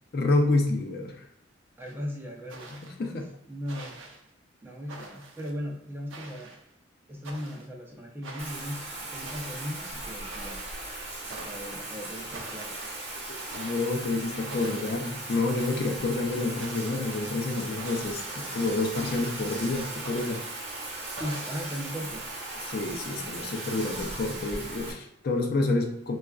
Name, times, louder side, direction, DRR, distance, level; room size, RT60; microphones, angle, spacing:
voice 1, 0.1-1.2 3.0-3.3 13.5-20.4 22.7-26.2, left 2 dB, 50° left, 3 dB, 0.4 m, -28 dB
voice 2, 1.8-2.7 3.5-4.0 4.6-6.5 7.1-8.8 9.1-10.6 11.3-13.1 21.2-22.2, equal, 10° right, -1 dB, 0.4 m, -37 dB
sound 1, 1.8-1.9 2.5-3.0 3.7-4.2 4.9-5.5 6.1-6.7 7.2-7.7 8.2-8.7 9.3-9.7 10.3-10.7 11.3-11.8 12.3-13.0 13.5-14.0 14.5-15.0 15.6-16.1 16.6-17.2 17.8-18.3 18.9-19.5 20.0-20.6 21.2-21.5, right 2 dB, 85° right, 0.5 m, -45 dB
Bathtub (filling or washing), 8.4-24.9, right 2 dB, 35° right, 0.8 m, -38 dB
4.0 x 2.3 x 2.2 m, 0.80 s
head